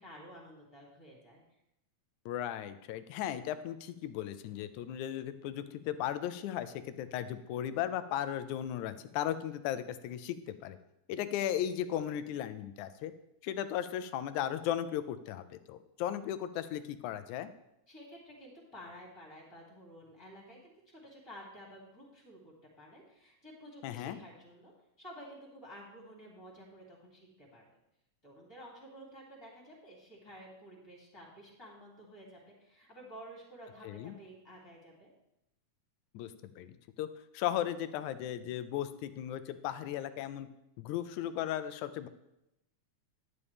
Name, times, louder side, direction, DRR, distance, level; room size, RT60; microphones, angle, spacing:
voice 1, 0.0-1.4 17.9-24.7 25.0-27.7 28.2-35.1, equal, 10° left, -3 dB, 2.7 m, -52 dB
voice 2, 2.3-10.8 11.1-13.1 13.4-17.5 23.8-24.2 33.8-34.1 36.1-37.1 37.3-40.5 40.8-42.1, left 11 dB, 90° left, 12 dB, 2.0 m, -36 dB
11.0 x 10.0 x 3.5 m, 0.85 s
omnidirectional pair, 3.4 m